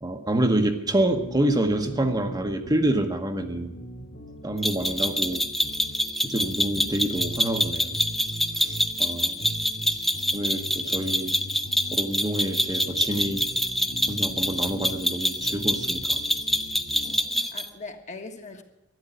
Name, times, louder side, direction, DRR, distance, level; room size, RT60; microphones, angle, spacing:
voice 1, 0.0-3.7 4.4-5.4 6.2-8.0 8.5-9.5 10.3-11.4 11.9-13.4 14.1-16.2, right 1 dB, 20° right, 5 dB, 1.1 m, -27 dB
sound 1, 0.8-17.2, equal, 65° left, 2.4 m, -41 dB
sound 2, 4.6-17.7, equal, ahead, 0.7 m, -26 dB
voice 2, 17.0-18.6, left 3 dB, 35° left, 4 dB, 1.5 m, -41 dB
12.5 x 10.5 x 9.2 m, 0.96 s
head